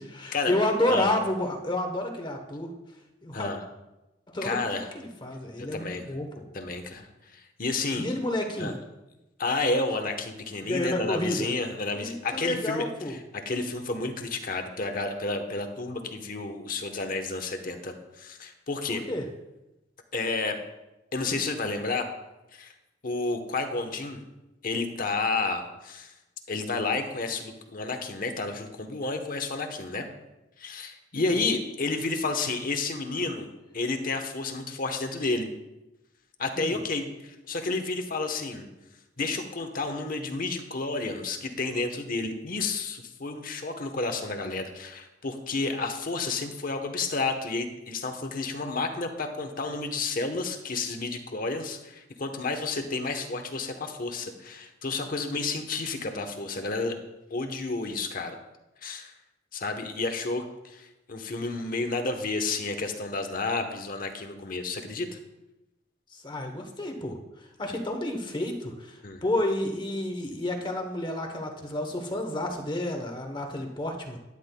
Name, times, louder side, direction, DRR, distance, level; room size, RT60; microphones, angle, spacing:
voice 1, 0.0-2.7 3.2-3.5 4.3-4.6 4.9-6.4 8.0-8.7 10.6-11.5 11.9-13.1 19.1-19.3 31.2-31.4 36.6-36.8 66.1-67.2 67.6-74.2, left 1 dB, 25° left, 3 dB, 1.0 m, -30 dB
voice 2, 3.3-3.6 4.4-4.9 5.7-6.0 6.5-7.1 7.3-8.1 8.6-8.7 9.4-13.2 13.4-19.0 20.1-20.6 21.1-22.1 22.5-22.7 23.0-24.2 24.6-26.1 26.5-30.1 30.6-35.5 36.4-38.7 39.2-57.0 57.3-58.4 58.8-59.1 59.5-65.2 69.0-69.2, left 3 dB, 50° left, 5 dB, 1.0 m, -31 dB
12.0 x 11.0 x 2.2 m, 0.99 s
head